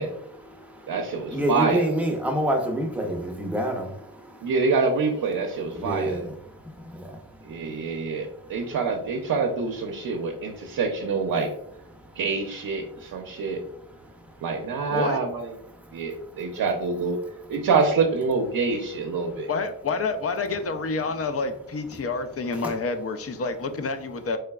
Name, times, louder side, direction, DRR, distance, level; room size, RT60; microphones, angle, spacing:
voice 1, 0.0-4.5 5.4-8.8 9.9-10.8 11.9-12.2 12.8-14.9 15.6-16.6 17.2-17.7 19.1-19.5 21.9-22.1 22.5-22.8, right 1 dB, 5° right, 2 dB, 0.6 m, -32 dB
voice 2, 0.9-1.8 4.4-6.2 7.5-11.5 12.2-13.6 14.4-15.5 15.9-17.2 17.5-19.5, right 4 dB, 65° right, 2 dB, 0.6 m, -26 dB
voice 3, 19.5-24.4, left 4 dB, 40° left, 9 dB, 0.4 m, -28 dB
3.8 x 3.3 x 2.3 m, 0.75 s
wide cardioid pair, 95°, 35 cm